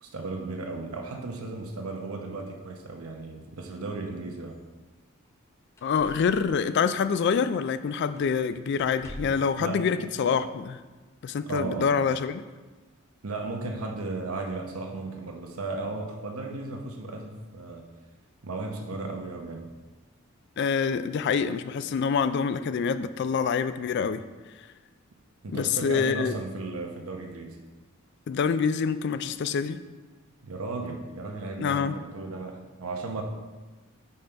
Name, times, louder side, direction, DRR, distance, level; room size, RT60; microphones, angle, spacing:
voice 1, 0.0-4.6 9.2-9.9 11.5-11.9 13.2-17.9 18.4-19.7 25.4-27.6 30.4-33.2, right 3 dB, 85° right, 3 dB, 0.9 m, -35 dB
sound 1, 5.2-5.4 5.8-7.7 8.1-8.4 8.7-9.5 10.6-10.7, equal, 15° left, 0.6 m, -46 dB
voice 2, 5.8-10.8 11.2-12.4 20.6-24.2 25.5-26.3 28.3-29.8 31.6-32.0, left 6 dB, 55° left, 13 dB, 0.3 m, -26 dB
5.5 x 5.4 x 4.4 m, 1.3 s
head